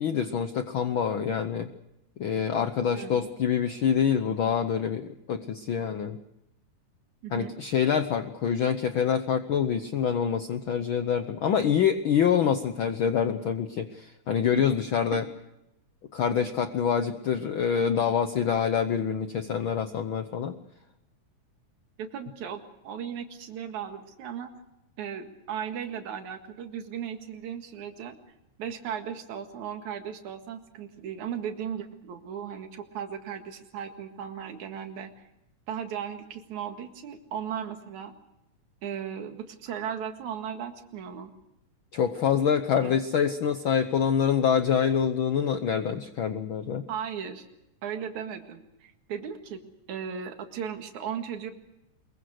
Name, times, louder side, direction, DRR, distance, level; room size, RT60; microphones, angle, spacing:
voice 1, 0.0-1.7 2.2-6.2 7.3-15.2 16.1-20.6 41.9-46.8, left 7 dB, 75° left, 9 dB, 1.1 m, -26 dB
voice 2, 7.2-7.5 14.6-14.7 15.1-15.2 22.0-24.5 25.0-28.2 28.6-35.3 35.7-38.1 38.8-41.3 42.8-43.0 46.9-47.5 47.8-49.6 49.9-51.5, right 8 dB, 70° right, 6 dB, 3.1 m, -36 dB
23.5 x 22.5 x 6.5 m, 0.87 s
omnidirectional pair, 3.6 m